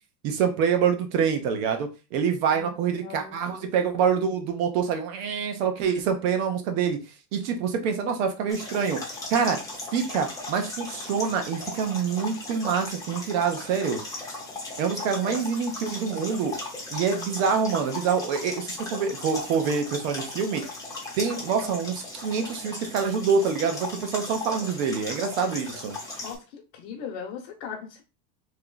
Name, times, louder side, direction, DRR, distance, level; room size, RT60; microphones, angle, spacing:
voice 1, 0.2-7.0 7.3-9.0 9.3-9.6 9.9-14.0 14.8-16.5 16.9-20.6 21.2-25.9, right 6 dB, 55° right, 6 dB, 1.0 m, -26 dB
voice 2, 2.5-3.7 15.2-15.4 26.2-28.0, left 7 dB, 50° left, -1 dB, 1.1 m, -39 dB
sound 1, 8.5-26.3, left 2 dB, 5° left, 0.8 m, -37 dB
3.2 x 3.0 x 3.9 m, 0.30 s
supercardioid pair, 160°, 49 cm